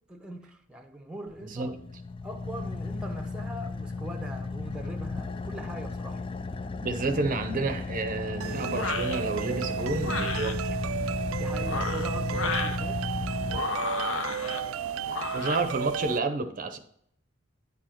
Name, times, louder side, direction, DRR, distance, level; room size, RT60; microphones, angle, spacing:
voice 1, 0.1-1.7 2.2-6.2 11.3-13.0 14.4-15.2, right 1 dB, 5° right, 0.7 m, -41 dB
Car / Idling, 1.3-14.3, left 3 dB, 25° left, 0.4 m, -34 dB
voice 2, 1.4-1.8 6.8-10.8 15.3-16.8, right 3 dB, 40° right, 0.6 m, -30 dB
sound 1, 8.4-16.2, right 8 dB, 85° right, 0.3 m, -33 dB
sound 2, 8.7-9.2 10.0-10.5 11.5-12.8 13.5-14.6 15.1-15.6, left 4 dB, 70° left, 0.8 m, -32 dB
9.5 x 4.9 x 4.4 m
head